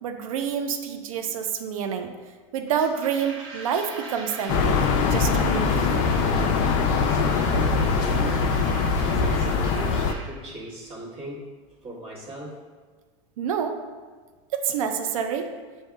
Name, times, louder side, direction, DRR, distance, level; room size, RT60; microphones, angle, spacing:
voice 1, 0.0-2.1 2.5-6.1 13.4-13.8 14.5-15.5, right 7 dB, 85° right, 6 dB, 0.5 m, -28 dB
sound 1, 2.7-10.3, right 2 dB, 55° right, 1.4 m, -40 dB
sound 2, 4.5-10.1, left 5 dB, 50° left, 0.4 m, -22 dB
voice 2, 6.6-12.6, right 1 dB, 35° right, -5 dB, 1.4 m, -40 dB
7.8 x 2.7 x 2.3 m, 1.4 s
supercardioid pair, 115°, 17 cm